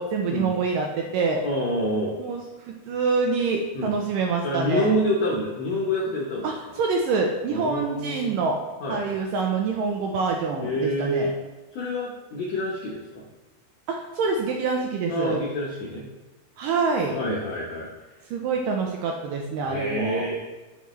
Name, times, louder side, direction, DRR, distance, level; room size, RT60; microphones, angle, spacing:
voice 1, 0.0-1.4 2.2-2.4 2.7-4.9 6.4-8.6 8.9-11.3 13.9-15.4 16.6-17.2 18.3-20.3, right 4 dB, 80° right, 1 dB, 2.0 m, -26 dB
voice 2, 1.4-2.1 3.7-3.9 4.4-6.5 7.5-8.3 8.8-9.0 10.6-11.4 11.7-13.2 15.1-16.1 17.1-17.9 19.6-20.4, equal, 75° left, -4 dB, 1.6 m, -27 dB
9.2 x 5.9 x 3.2 m, 1.2 s
omnidirectional pair, 4.5 m